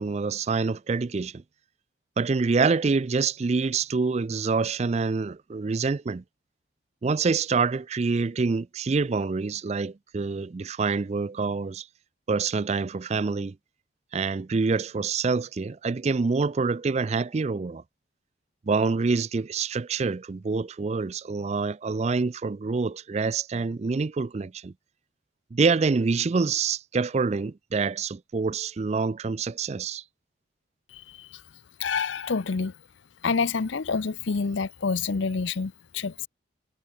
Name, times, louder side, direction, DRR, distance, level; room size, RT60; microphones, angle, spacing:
voice 1, 0.0-1.4 2.2-6.2 7.0-11.9 12.3-13.5 14.1-17.8 18.7-24.7 25.5-30.0, right 4 dB, 35° right, 0.3 m, -26 dB
voice 2, 30.9-31.4 31.8-32.7 33.2-36.3, left 5 dB, 65° left, 0.6 m, -28 dB
head